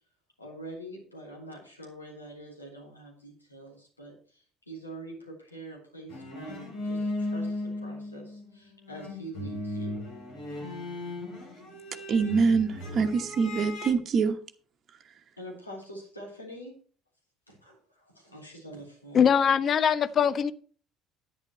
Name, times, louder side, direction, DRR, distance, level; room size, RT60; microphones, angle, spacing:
voice 1, 0.4-10.0 15.4-16.8 17.5-19.3, right 1 dB, 90° left, 3.6 m, -45 dB
sound 1, 6.1-8.6 8.9-13.9, left 1 dB, 60° left, 4.5 m, -36 dB
voice 2, 12.1-14.3, right 5 dB, 40° right, 1.1 m, -24 dB
voice 3, 19.1-20.5, left 7 dB, 45° left, 0.8 m, -22 dB
10.5 x 9.7 x 4.4 m
figure-of-eight pair, 55°, 0 cm